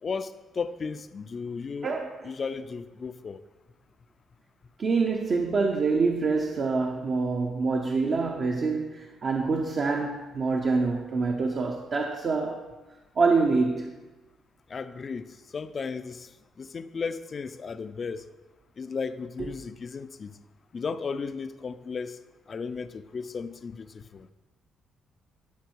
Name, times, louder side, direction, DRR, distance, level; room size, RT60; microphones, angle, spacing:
voice 1, 0.0-1.9 2.2-3.4 14.7-16.3 16.6-18.3 18.8-20.4 20.7-22.2 22.5-24.3, left 5 dB, 40° left, 12 dB, 0.4 m, -35 dB
voice 2, 1.8-2.2 4.8-12.6 13.2-14.0 19.4-19.5, right 4 dB, 50° right, 2 dB, 0.8 m, -26 dB
12.0 x 4.7 x 4.6 m, 1.2 s
cardioid pair, 90°, 0 cm